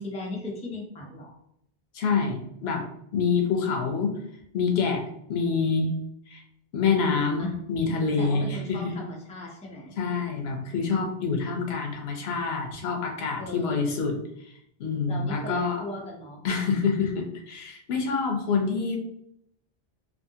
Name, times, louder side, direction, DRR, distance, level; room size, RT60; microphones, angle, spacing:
voice 1, 0.0-1.4 7.4-7.6 8.2-10.0 13.4-13.9 15.1-16.4, left 2 dB, 10° left, -2 dB, 0.4 m, -37 dB
voice 2, 1.9-2.9 3.1-4.1 4.5-5.0 5.3-5.9 6.3-6.4 6.7-8.9 10.0-14.5 14.8-15.8 16.4-19.0, left 5 dB, 80° left, 3 dB, 0.9 m, -26 dB
2.6 x 2.5 x 2.7 m, 0.74 s
omnidirectional pair, 1.0 m